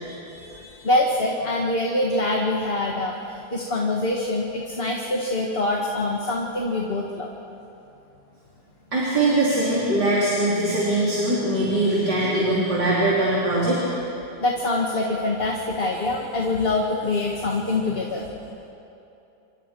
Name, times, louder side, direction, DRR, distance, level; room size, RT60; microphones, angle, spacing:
voice 1, 0.3-3.2 3.5-7.3 14.4-18.2, left 2 dB, 35° left, -1 dB, 1.9 m, -24 dB
voice 2, 8.9-13.8, right 1 dB, 70° right, -7 dB, 4.4 m, -21 dB
29.0 x 26.0 x 4.6 m, 2.8 s
omnidirectional pair, 1.9 m